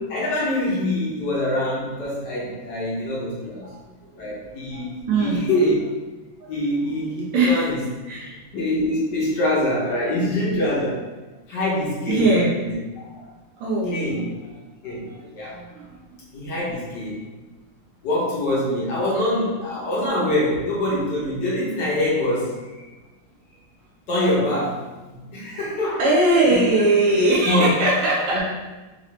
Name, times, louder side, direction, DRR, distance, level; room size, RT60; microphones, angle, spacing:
voice 1, 0.1-3.7 4.2-5.8 6.5-7.8 8.5-11.1 11.5-12.3 12.6-12.7 13.1-13.2 13.9-14.3 14.8-15.6 16.3-17.2 18.0-22.8 24.1-26.0 26.5-26.6 27.4-27.7 28.2-28.4, left 1 dB, 60° left, -6 dB, 1.3 m, -24 dB
voice 2, 4.7-5.5 6.4-6.5 7.3-7.7 8.1-8.4 12.1-12.5 13.6-14.3 15.1-15.9 26.0-28.4, right 2 dB, 90° right, -5 dB, 1.8 m, -21 dB
4.6 x 2.5 x 3.1 m, 1.2 s
omnidirectional pair, 2.4 m